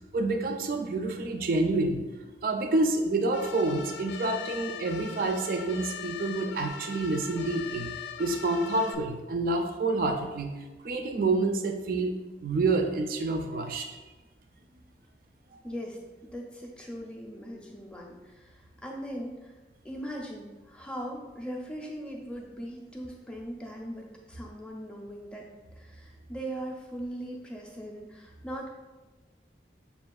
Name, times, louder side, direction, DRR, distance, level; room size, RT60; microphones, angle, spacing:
voice 1, 0.1-2.0 2.4-7.9 8.2-10.5 10.8-13.9, right 2 dB, 50° right, 5 dB, 0.3 m, -28 dB
sound 1, 3.3-8.9, left 7 dB, 75° left, 0.3 m, -41 dB
voice 2, 15.6-19.6 19.8-28.7, equal, 5° left, -1 dB, 0.5 m, -40 dB
6.6 x 2.3 x 2.3 m, 1.2 s
head